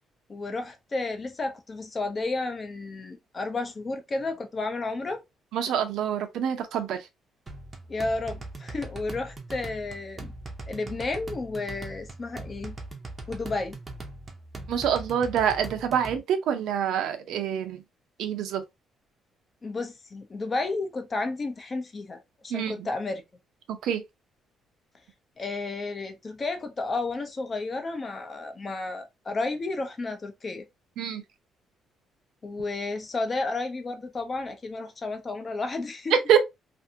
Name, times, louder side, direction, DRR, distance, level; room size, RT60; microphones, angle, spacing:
voice 1, 0.3-5.2 7.9-10.3 10.7-12.8 13.3-13.8 19.6-23.2 25.4-30.6 32.4-36.4, left 3 dB, 25° left, 0.5 m, -32 dB
voice 2, 5.5-7.0 14.7-17.8 18.2-18.6 22.5-22.8 23.7-24.0 31.0-31.2 36.1-36.4, right 8 dB, 80° right, 0.6 m, -26 dB
sound 1, 7.5-16.2, right 2 dB, 20° right, 0.6 m, -40 dB
2.6 x 2.5 x 2.6 m
cardioid pair, 165°, 0 cm